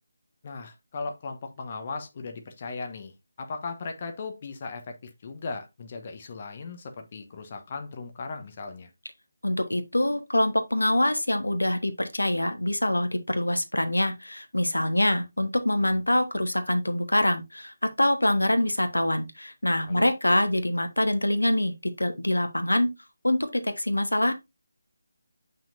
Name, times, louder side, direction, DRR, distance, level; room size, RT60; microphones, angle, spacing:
voice 1, 0.4-8.9 19.9-20.1, left 4 dB, 35° left, 1.0 m, -37 dB
voice 2, 9.4-22.9 23.2-24.3, left 1 dB, 80° left, 1.2 m, -25 dB
7.1 x 5.9 x 2.6 m
figure-of-eight pair, 155°, 0 cm